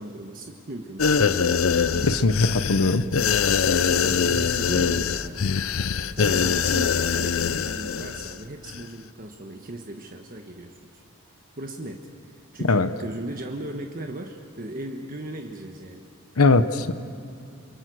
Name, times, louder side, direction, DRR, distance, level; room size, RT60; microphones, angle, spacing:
voice 1, 0.0-1.4 1.9-2.5 3.8-5.5 6.2-11.0 11.6-16.1, right 1 dB, 40° right, 3 dB, 1.3 m, -37 dB
sound 1, 1.0-8.4 8.7-8.8, left 6 dB, 70° left, 0.6 m, -23 dB
voice 2, 2.0-2.3 2.7-3.0 12.7-12.9 16.4-16.9, left 3 dB, 90° left, 11 dB, 0.9 m, -19 dB
29.5 x 22.5 x 6.4 m, 2.5 s
head